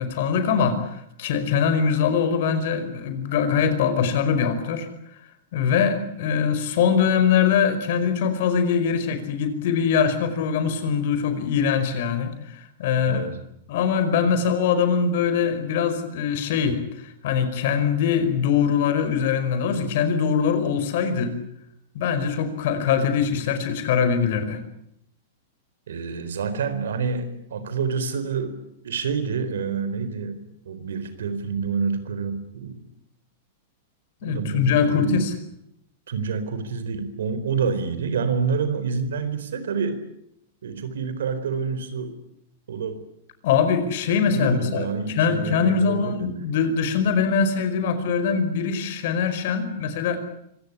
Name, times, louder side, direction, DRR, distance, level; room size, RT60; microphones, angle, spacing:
voice 1, 0.0-4.9 5.5-13.3 13.7-21.4 21.9-24.6 34.2-35.3 43.4-50.2, left 6 dB, 65° left, 10 dB, 5.0 m, -22 dB
voice 2, 13.1-13.4 25.9-28.5 28.8-30.4 30.6-32.9 34.2-35.2 36.1-40.0 40.6-42.2 42.7-43.0 44.3-46.3, right 5 dB, 85° right, 12 dB, 4.1 m, -28 dB
25.0 x 17.5 x 9.9 m, 0.76 s
hypercardioid pair, 125°, 0 cm